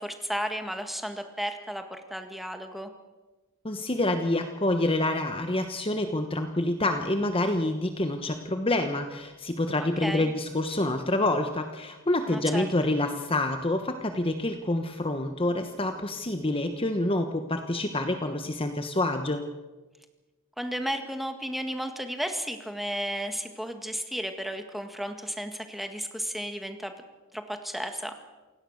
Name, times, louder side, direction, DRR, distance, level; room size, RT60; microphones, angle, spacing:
voice 1, 0.0-2.9 10.0-10.3 12.3-12.7 20.6-26.9 27.3-28.1, equal, ahead, 6 dB, 1.8 m, -33 dB
voice 2, 3.6-19.4, left 1 dB, 25° left, 7 dB, 1.2 m, -27 dB
28.0 x 17.5 x 6.5 m, 1.2 s
head